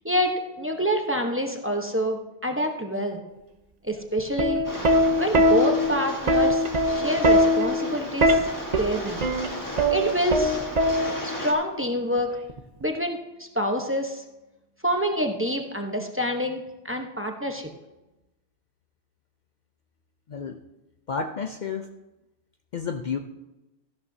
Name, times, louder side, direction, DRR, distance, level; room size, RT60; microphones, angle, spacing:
voice 1, 0.0-3.2 3.8-4.6 5.2-8.4 8.8-9.3 9.9-10.6 11.2-12.3 12.8-14.2 14.8-17.7, equal, 15° right, 3 dB, 0.9 m, -27 dB
Plucked string instrument, 4.2-11.4 12.5-12.8, equal, 45° right, 0.8 m, -22 dB
Rain, 4.6-11.5, equal, 20° left, 1.6 m, -35 dB
voice 2, 20.3-20.6 21.1-21.9 22.7-23.2, left 5 dB, 50° left, 5 dB, 0.7 m, -30 dB
14.0 x 12.0 x 2.7 m, 0.99 s
omnidirectional pair, 1.1 m